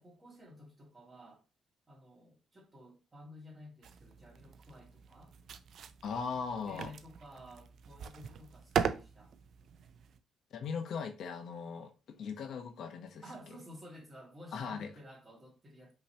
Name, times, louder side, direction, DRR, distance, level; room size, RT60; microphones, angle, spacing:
voice 1, 0.0-1.4 1.9-5.3 6.7-9.4 13.2-15.9, left 1 dB, 25° right, 2.1 m, -53 dB
sound 1, 3.8-10.2, right 7 dB, 65° right, 0.4 m, -40 dB
voice 2, 6.0-6.9 10.5-13.2 14.5-14.9, left 5 dB, 70° left, 0.9 m, -39 dB
5.5 x 3.1 x 2.8 m
cardioid pair, 90°, 0 cm